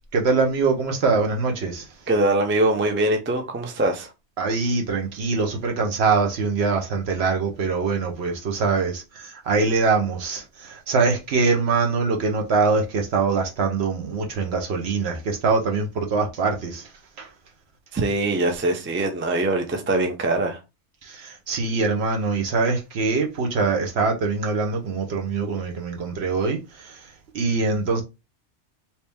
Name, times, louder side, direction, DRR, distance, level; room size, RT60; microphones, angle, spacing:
voice 1, 0.1-1.9 4.4-16.9 17.2-17.3 21.0-28.0, right 4 dB, 70° right, 1.1 m, -23 dB
voice 2, 2.1-4.1 17.9-20.6, right 2 dB, 15° right, 0.4 m, -22 dB
2.9 x 2.8 x 3.4 m
omnidirectional pair, 1.2 m